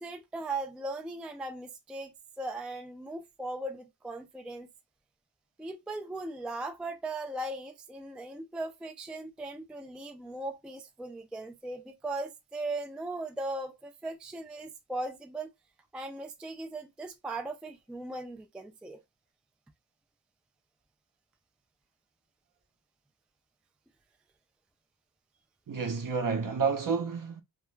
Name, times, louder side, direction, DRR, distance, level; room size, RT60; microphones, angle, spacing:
voice 1, 0.0-2.1 2.4-4.7 5.6-15.5 15.9-19.0, right 2 dB, ahead, 0.3 m, -38 dB
voice 2, 25.7-27.4, right 5 dB, 45° right, 0.7 m, -30 dB
2.3 x 2.2 x 3.1 m
wide cardioid pair, 70°, 44 cm